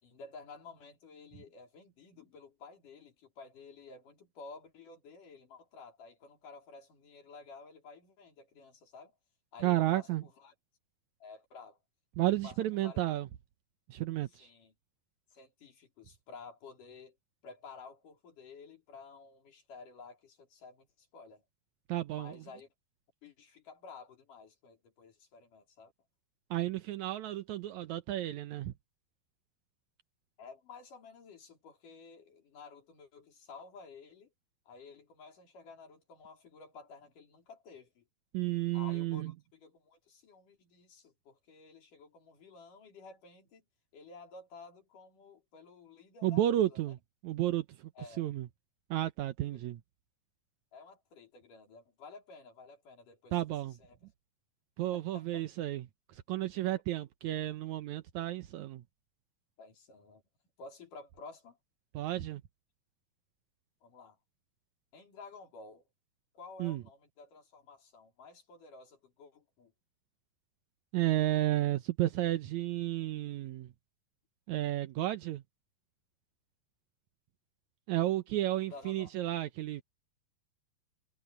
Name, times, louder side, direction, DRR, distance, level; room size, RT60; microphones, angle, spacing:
voice 1, 0.0-9.1 9.5-10.5 11.2-11.8 12.2-13.0 14.3-14.7 15.3-17.2 17.4-21.4 22.1-22.7 23.2-25.9 30.4-34.3 34.7-38.0 38.7-43.6 43.9-46.9 48.0-48.2 49.4-49.6 50.7-54.0 54.9-55.4 59.6-60.2 60.6-61.6 63.8-64.2 64.9-65.8 66.3-69.7 78.7-79.1, left 4 dB, 55° left, 5.7 m, -52 dB
voice 2, 9.6-10.2 12.2-13.3 13.9-14.5 21.9-22.3 26.5-28.7 38.3-39.3 46.2-47.0 47.2-47.9 48.2-48.5 48.9-49.8 53.3-53.7 54.8-55.9 56.1-58.8 61.9-62.4 66.6-66.8 70.9-73.7 74.5-75.4 77.9-79.8, right 14 dB, 85° right, 1.6 m, -32 dB
omnidirectional pair, 4.5 m